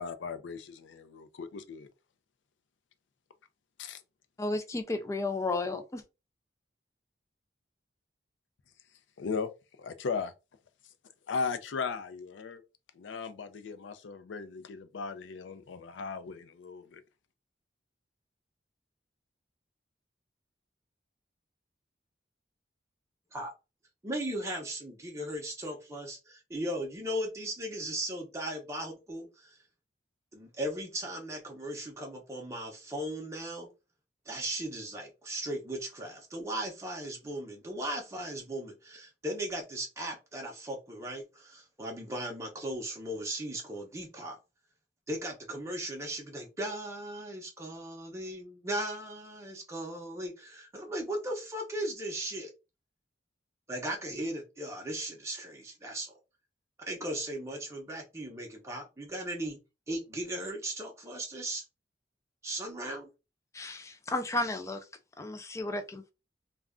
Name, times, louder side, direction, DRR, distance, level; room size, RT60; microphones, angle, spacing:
voice 1, 0.0-1.9 3.8-4.0 9.2-9.5 9.8-10.3 11.3-12.6 12.9-17.0, left 5 dB, 85° left, 0.4 m, -37 dB
voice 2, 4.4-6.0 63.5-64.9 65.2-66.1, left 2 dB, 15° left, 0.3 m, -33 dB
voice 3, 24.0-29.6 30.3-33.7 34.3-44.4 45.1-52.5 53.7-56.1 56.9-59.6 59.9-61.6 62.4-63.1, right 1 dB, 15° right, 0.7 m, -37 dB
2.4 x 2.1 x 3.6 m
head